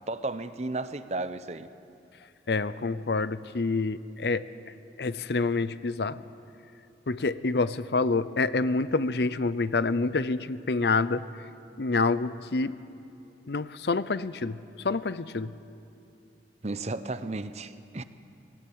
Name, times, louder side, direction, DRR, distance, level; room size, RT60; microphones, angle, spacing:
voice 1, 0.1-1.7 16.6-18.0, right 2 dB, 40° right, 12 dB, 0.8 m, -33 dB
voice 2, 2.5-4.5 5.0-6.2 7.1-11.2 11.8-12.8 13.5-14.6 14.8-15.5, left 3 dB, 65° left, 16 dB, 0.6 m, -27 dB
22.5 x 17.0 x 8.8 m, 2.7 s
head